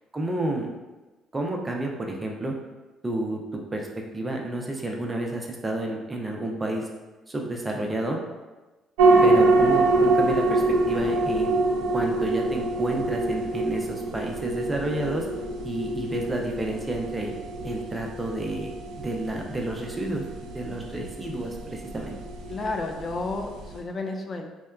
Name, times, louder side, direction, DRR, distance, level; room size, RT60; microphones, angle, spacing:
voice 1, 0.1-0.7 1.3-2.5 3.0-3.9 4.1-6.9 7.3-8.2 9.2-11.6 11.9-15.3 15.6-17.3 17.6-18.7 19.0-20.2 20.5-22.2, right 1 dB, 20° right, 1 dB, 0.5 m, -30 dB
sound 1, 9.0-23.8, right 2 dB, 80° right, 0.3 m, -25 dB
voice 2, 22.5-24.5, left 3 dB, 40° left, 4 dB, 0.4 m, -31 dB
2.8 x 2.1 x 2.3 m, 1.2 s
hypercardioid pair, 55°, 0 cm